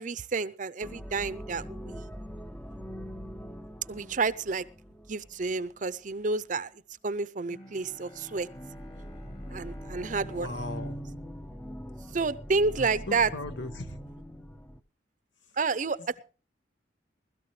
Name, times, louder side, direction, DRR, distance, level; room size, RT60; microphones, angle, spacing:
voice 1, 0.0-2.1 3.9-4.6 5.1-6.7 7.0-8.5 9.5-10.5 12.1-13.3 15.6-16.2, right 4 dB, 45° right, 0.6 m, -30 dB
sound 1, 0.8-5.7 7.7-14.8, equal, 10° left, 0.6 m, -43 dB
Bowed string instrument, 7.5-12.7, equal, 30° left, 2.2 m, -51 dB
voice 2, 10.3-11.0 12.8-14.0 15.4-15.6, left 2 dB, 80° left, 1.5 m, -38 dB
20.0 x 13.0 x 3.2 m
head